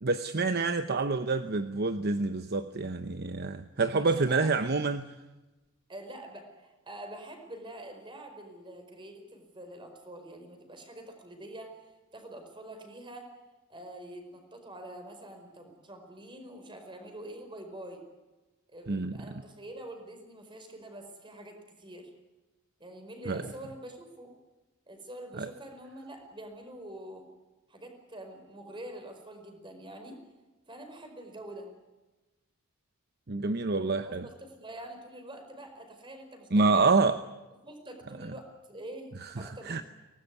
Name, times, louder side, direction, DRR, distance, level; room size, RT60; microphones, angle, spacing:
voice 1, 0.0-5.0 18.9-19.4 23.3-23.4 25.4-25.5 33.3-34.3 36.5-37.2 38.2-38.3 39.4-39.8, right 3 dB, 50° right, 10 dB, 0.8 m, -27 dB
voice 2, 3.9-4.7 5.9-13.3 13.7-18.0 18.7-22.1 22.8-24.3 24.9-27.2 27.7-30.2 30.7-31.7 34.0-36.9 37.6-39.8, right 1 dB, 25° right, 5 dB, 4.9 m, -45 dB
23.5 x 19.0 x 9.6 m, 1.1 s
head